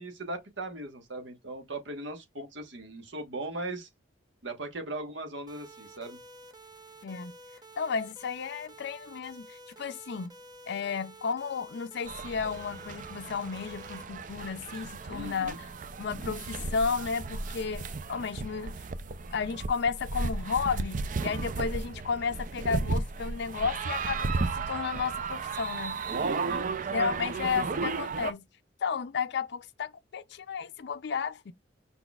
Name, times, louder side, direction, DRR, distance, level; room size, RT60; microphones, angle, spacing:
voice 1, 0.0-3.9 4.4-6.2 15.1-15.6 26.1-26.7, right 2 dB, 70° right, 1.3 m, -39 dB
sound 1, 5.5-14.0, right 1 dB, 20° right, 1.1 m, -51 dB
voice 2, 7.0-7.3 7.8-10.3 10.7-15.7 16.0-18.8 19.3-26.0 26.8-28.4 28.8-31.5, left 5 dB, 60° left, 0.4 m, -33 dB
sound 2, 12.1-28.3, right 4 dB, 40° right, 0.4 m, -34 dB
5.6 x 4.0 x 2.3 m
head